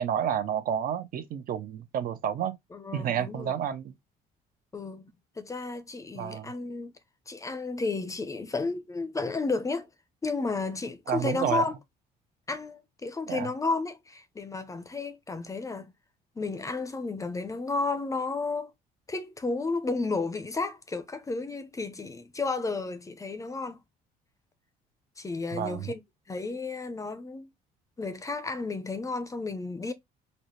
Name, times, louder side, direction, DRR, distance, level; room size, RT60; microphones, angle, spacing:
voice 1, 0.0-2.6 2.9-3.9 6.1-6.5 11.1-11.7 13.3-13.5 25.5-25.9, right 9 dB, 60° right, 0.6 m, -30 dB
voice 2, 2.7-3.5 4.7-6.9 7.3-9.9 10.2-11.7 12.5-15.9 16.4-18.7 19.1-23.8 25.2-26.0 26.3-27.5 28.0-29.9, left 3 dB, 20° left, 0.5 m, -32 dB
4.0 x 2.1 x 3.0 m
cardioid pair, 110°, 17 cm